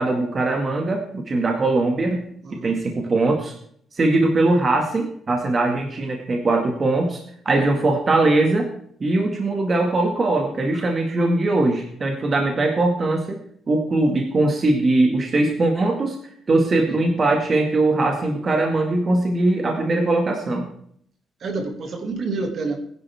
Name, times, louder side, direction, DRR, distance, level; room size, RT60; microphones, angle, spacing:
voice 1, 0.0-2.2 2.6-3.6 3.9-8.7 9.0-13.4 13.7-16.2 16.5-20.7, right 2 dB, 30° right, 2 dB, 2.0 m, -21 dB
voice 2, 2.4-2.8 7.6-7.7 16.9-17.1 21.4-22.8, right 3 dB, 45° right, 4 dB, 2.3 m, -29 dB
20.5 x 10.5 x 3.6 m, 0.64 s
cardioid pair, 165°, 0 cm